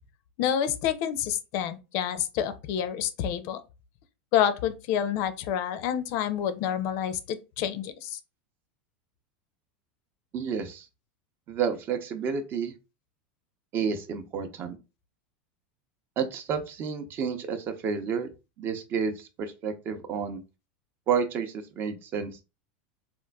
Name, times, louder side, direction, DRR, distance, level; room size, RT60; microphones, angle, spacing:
voice 1, 0.4-3.6 4.3-8.2, left 9 dB, 55° left, 0.5 m, -28 dB
voice 2, 10.3-10.9 11.5-12.7 13.7-14.7 16.2-18.3 18.6-20.4 21.1-22.4, right 6 dB, 40° right, 0.6 m, -30 dB
3.7 x 2.4 x 2.2 m
supercardioid pair, 120°, 6 cm